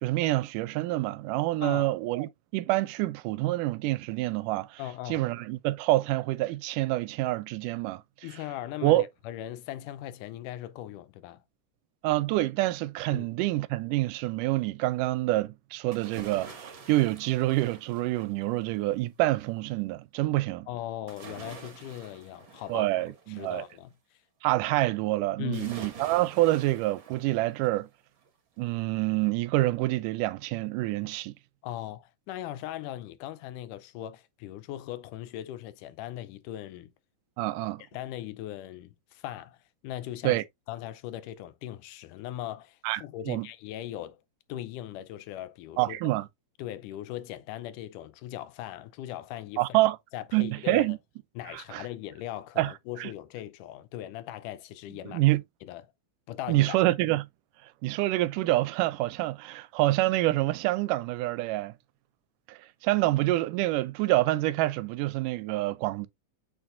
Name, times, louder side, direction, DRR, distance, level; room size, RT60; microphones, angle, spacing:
voice 1, 0.0-4.8 5.1-8.0 8.8-9.1 12.0-20.7 22.7-23.6 24.4-27.9 28.6-31.3 37.4-37.8 40.2-40.4 42.8-43.5 45.8-46.3 49.6-50.0 50.3-51.0 51.5-51.9 52.6-52.7 53.0-53.1 55.1-55.4 56.5-57.3 57.8-61.7 62.5-66.1, right 18 dB, 85° right, 2.1 m, -27 dB
voice 2, 1.6-1.9 4.8-5.2 8.2-11.4 13.1-13.3 20.7-22.9 23.3-23.9 25.4-25.8 31.6-36.9 37.9-39.6 39.8-40.4 40.7-44.2 44.5-46.0 46.6-49.8 50.1-50.9 51.4-55.2 55.6-55.8 56.3-56.8, left 13 dB, 80° left, 2.2 m, -39 dB
sound 1, 15.9-18.7 21.1-23.7 25.5-27.8 28.2-28.3, right 5 dB, 45° right, 1.8 m, -47 dB
6.9 x 6.0 x 2.5 m
omnidirectional pair, 3.7 m